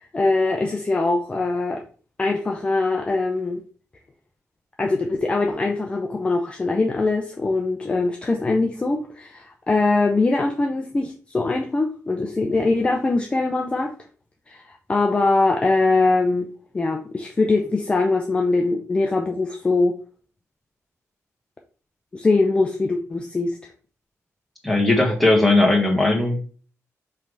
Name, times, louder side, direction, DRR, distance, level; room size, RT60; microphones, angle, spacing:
voice 1, 0.1-1.8 2.2-3.6 4.8-13.9 14.5-16.5 16.7-20.0 22.1-23.6, left 3 dB, 20° left, 2 dB, 0.6 m, -22 dB
voice 2, 24.6-26.4, left 2 dB, ahead, -1 dB, 1.5 m, -18 dB
5.6 x 3.3 x 5.2 m, 0.40 s
wide cardioid pair, 175°, 5 cm